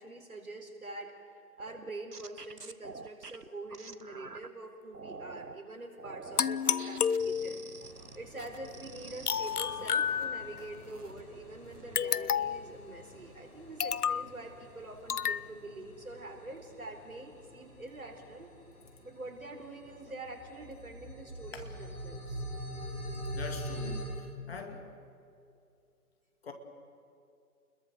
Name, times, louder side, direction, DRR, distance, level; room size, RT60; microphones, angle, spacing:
voice 1, 0.0-18.5 19.0-22.4, right 2 dB, 65° right, 4 dB, 4.3 m, -45 dB
sound 1, 1.6-4.5 4.9-5.6 6.0-10.2 10.6-11.2 11.6-12.0, right 4 dB, 85° right, 1.1 m, -48 dB
sound 2, 6.4-7.8 9.3-10.7 12.0-12.7 13.8-14.3 15.1-15.4, left 7 dB, 75° left, 0.6 m, -30 dB
sound 3, 7.8-24.0, equal, 10° left, 7.6 m, -45 dB
voice 2, 23.3-24.9 26.4-26.5, left 4 dB, 40° left, 5 dB, 2.4 m, -43 dB
29.5 x 21.5 x 6.7 m, 2.5 s
figure-of-eight pair, 145°, 46 cm